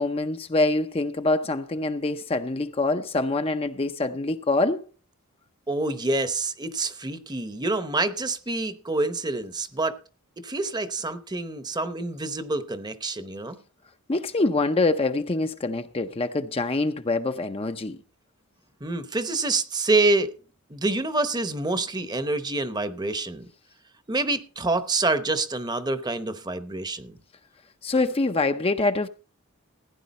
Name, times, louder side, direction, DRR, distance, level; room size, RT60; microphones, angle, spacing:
voice 1, 0.0-4.9 14.1-18.0 27.8-29.1, left 2 dB, 25° left, 0.5 m, -25 dB
voice 2, 5.7-10.0 10.4-13.6 18.8-20.3 20.7-23.5 24.1-27.2, right 2 dB, 20° right, 0.8 m, -27 dB
15.5 x 10.0 x 4.2 m
head